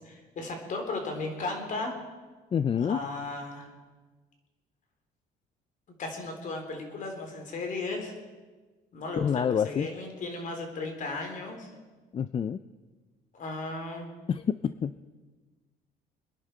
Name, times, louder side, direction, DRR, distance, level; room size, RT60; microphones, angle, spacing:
voice 1, 0.3-1.9 2.8-3.7 6.0-8.1 8.9-11.7 13.3-14.1, left 3 dB, 50° left, 4 dB, 3.6 m, -35 dB
voice 2, 2.5-3.0 9.2-9.9 12.1-12.6 14.3-14.9, left 7 dB, 30° left, 13 dB, 0.4 m, -27 dB
25.0 x 10.5 x 4.5 m, 1.3 s
cardioid pair, 110°, 17 cm